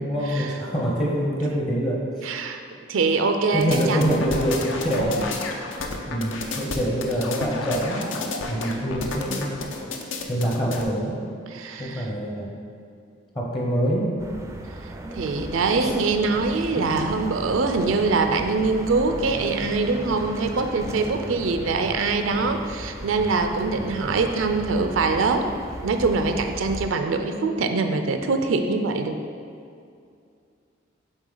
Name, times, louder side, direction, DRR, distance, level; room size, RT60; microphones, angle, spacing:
voice 1, 0.0-2.3 3.5-5.3 6.1-8.1 8.5-9.6 10.3-11.2 11.8-12.5 13.3-14.2 15.8-15.9 16.8-16.9, right 1 dB, 25° left, -2 dB, 0.7 m, -25 dB
voice 2, 2.2-2.6 2.9-4.2 5.0-5.2 11.5-12.1 15.1-25.4 25.8-29.2, right 3 dB, 85° right, 6 dB, 0.4 m, -23 dB
sound 1, 3.6-10.8, left 3 dB, 75° left, 0.6 m, -31 dB
sound 2, 14.2-26.9, right 1 dB, 15° right, 0.3 m, -36 dB
8.0 x 3.5 x 3.9 m, 2.4 s
head